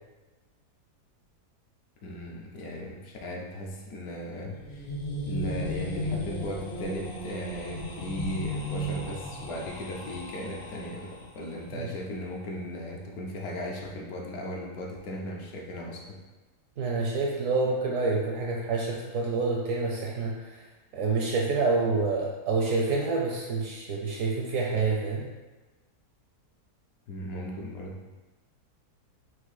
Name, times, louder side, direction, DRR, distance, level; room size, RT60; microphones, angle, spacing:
voice 1, 2.0-4.9 5.2-16.2 27.1-28.0, equal, 70° left, -1 dB, 1.1 m, -37 dB
sound 1, 4.5-11.4, equal, 50° left, 0.7 m, -35 dB
voice 2, 16.8-20.6 20.9-25.3, right 3 dB, 70° right, -2 dB, 0.8 m, -27 dB
4.5 x 2.6 x 4.1 m, 1.2 s
omnidirectional pair, 1.8 m